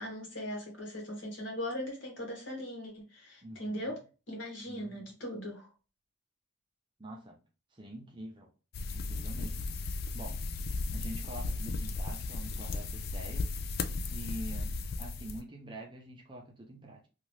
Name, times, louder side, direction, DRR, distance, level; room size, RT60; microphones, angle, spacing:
voice 1, 0.0-4.0 4.3-5.7, equal, 65° left, 0 dB, 1.4 m, -39 dB
voice 2, 3.4-4.0 4.7-5.1 7.0-7.4 7.7-8.5 8.9-9.6 10.1-10.4 10.9-13.5 14.1-17.1, right 1 dB, 25° right, 1 dB, 0.6 m, -45 dB
sound 1, 8.7-15.4, left 3 dB, 50° left, 0.3 m, -35 dB
2.9 x 2.5 x 3.1 m, 0.33 s
head